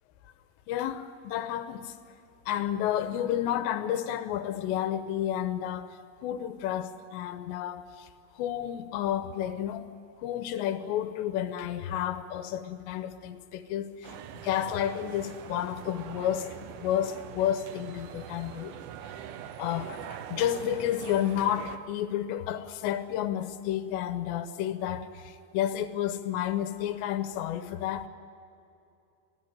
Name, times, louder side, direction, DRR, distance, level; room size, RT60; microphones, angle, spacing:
voice 1, 0.7-2.0 2.5-8.1 8.3-9.9 10.2-18.8 19.1-19.2 19.6-28.1, left 11 dB, 85° left, 3.0 m, -31 dB
sound 1, 14.0-21.8, right 9 dB, 85° right, 1.8 m, -43 dB
26.5 x 17.0 x 9.0 m
omnidirectional pair, 5.2 m